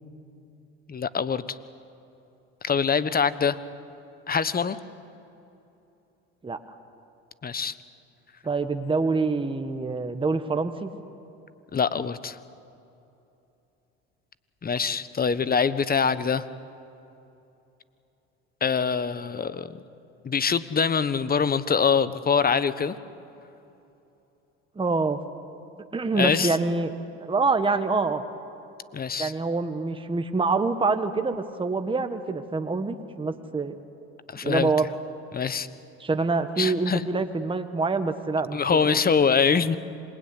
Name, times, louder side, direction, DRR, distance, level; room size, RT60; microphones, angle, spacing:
voice 1, 0.9-1.6 2.6-3.6 4.3-4.8 7.4-7.7 11.7-12.4 14.6-16.4 18.6-19.8 20.2-23.0 26.1-26.6 28.9-29.3 34.3-34.7 35.3-35.7 36.6-37.0 38.5-39.8, left 6 dB, 30° left, 15 dB, 1.2 m, -24 dB
voice 2, 8.4-10.9 24.7-25.2 25.9-26.9 27.2-28.2 29.2-33.7 34.4-34.9 36.0-39.0, right 3 dB, 15° right, 7 dB, 1.5 m, -26 dB
26.5 x 20.5 x 9.9 m, 2.8 s
supercardioid pair, 85°, 31 cm